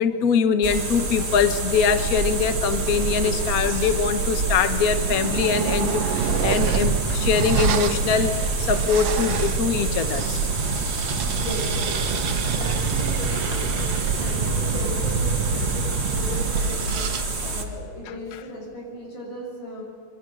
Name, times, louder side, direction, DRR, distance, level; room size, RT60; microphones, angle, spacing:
voice 1, 0.0-8.3 8.6-10.4, left 6 dB, 55° left, 9 dB, 0.9 m, -23 dB
sound 1, 0.6-17.6, right 2 dB, 25° right, 1.7 m, -28 dB
sound 2, 2.0-17.2, right 6 dB, 60° right, 2.0 m, -27 dB
voice 2, 11.3-12.0 12.3-17.1 17.4-19.8, left 1 dB, 90° left, -1 dB, 7.9 m, -36 dB
26.0 x 23.5 x 6.5 m, 2.1 s
omnidirectional pair, 3.4 m